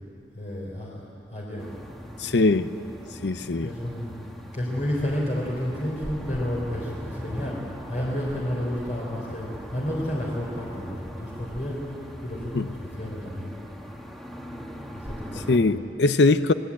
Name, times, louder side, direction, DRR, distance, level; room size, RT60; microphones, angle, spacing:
voice 1, 0.4-1.7 3.6-4.2 4.5-7.6 7.9-13.5 14.9-15.7, equal, 45° left, -4 dB, 3.8 m, -31 dB
sound 1, 1.6-15.6, equal, ahead, 1.6 m, -40 dB
voice 2, 2.2-2.7 3.2-3.7 12.5-12.7 15.5-16.5, left 3 dB, 65° left, 12 dB, 0.7 m, -21 dB
25.5 x 19.0 x 8.5 m, 2.7 s
head